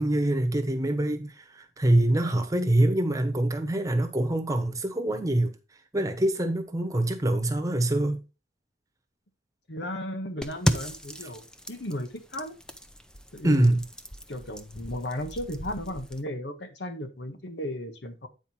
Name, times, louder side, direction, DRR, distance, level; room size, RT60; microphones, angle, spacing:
voice 1, 0.0-5.5 5.9-8.2 13.4-13.8, right 1 dB, 20° right, 1.1 m, -25 dB
voice 2, 9.7-12.5 13.3-13.7 14.3-18.3, left 1 dB, 80° left, 1.4 m, -35 dB
sound 1, 10.4-16.2, equal, 5° left, 0.6 m, -35 dB
9.1 x 4.7 x 4.4 m
head